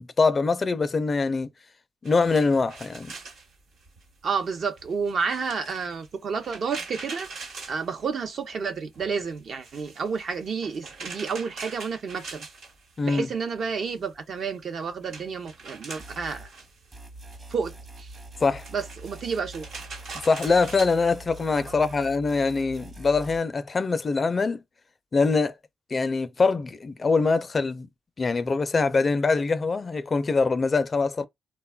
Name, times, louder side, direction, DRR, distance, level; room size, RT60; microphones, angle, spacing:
voice 1, 0.0-1.5 2.0-3.1 13.0-13.3 18.4-18.6 20.2-24.6 25.1-25.5 25.9-27.9 28.2-31.2, left 4 dB, 40° left, 0.4 m, -23 dB
sound 1, 2.0-8.6 8.9-13.3 13.6-21.2, right 4 dB, 80° right, 1.2 m, -43 dB
voice 2, 4.2-7.3 7.7-12.5 13.0-16.5 17.5-18.1 18.7-19.7 21.7-21.8, right 5 dB, 60° right, 0.6 m, -30 dB
sound 2, 16.0-16.5 16.9-20.2 20.5-23.4, right 1 dB, 35° right, 0.9 m, -44 dB
3.4 x 2.2 x 2.2 m
supercardioid pair, 60°, 0 cm